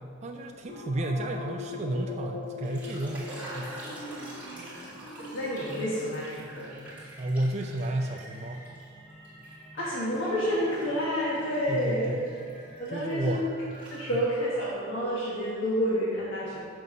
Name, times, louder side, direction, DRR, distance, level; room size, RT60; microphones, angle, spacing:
voice 1, 0.2-3.8 7.2-8.7 11.7-12.2 12.9-13.5, right 1 dB, 35° right, 2 dB, 0.4 m, -31 dB
sound 1, 0.6-15.2, left 3 dB, 45° left, 1.6 m, -44 dB
sound 2, 2.5-8.9 9.2-13.4 13.7-14.5, right 1 dB, 10° right, 1.8 m, -47 dB
voice 2, 3.9-6.9 9.7-12.1 12.8-13.4 13.9-16.6, equal, 80° left, -7 dB, 1.4 m, -30 dB
6.2 x 5.3 x 6.1 m, 2.2 s
head